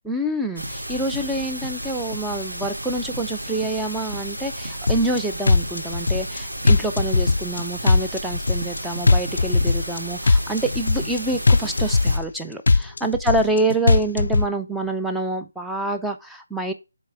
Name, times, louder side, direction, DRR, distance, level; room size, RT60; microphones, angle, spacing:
voice 1, 0.0-16.7, right 2 dB, ahead, 4 dB, 0.5 m, -27 dB
sound 1, 0.6-0.8 1.1-1.3 1.6-1.8 2.1-2.3 2.6-2.8 3.1-3.3 3.6-3.8 4.1-4.3 4.6-4.9 5.1-5.3 5.6-5.8 6.2-6.4 6.6-7.8 8.6-9.8 10.6-11.8 12.7-13.9, right 1 dB, 50° right, 1.5 m, -36 dB
sound 2, 0.6-12.2, right 1 dB, 85° right, 2.2 m, -33 dB
sound 3, 4.9-5.2 5.5-6.4 6.7-7.6 7.9-8.8 9.1-10.0 10.3-11.2 11.5-12.4 12.7-13.6 13.9-14.5, left 3 dB, 65° left, 0.3 m, -18 dB
5.4 x 4.2 x 4.6 m, 0.26 s
figure-of-eight pair, 155°, 0 cm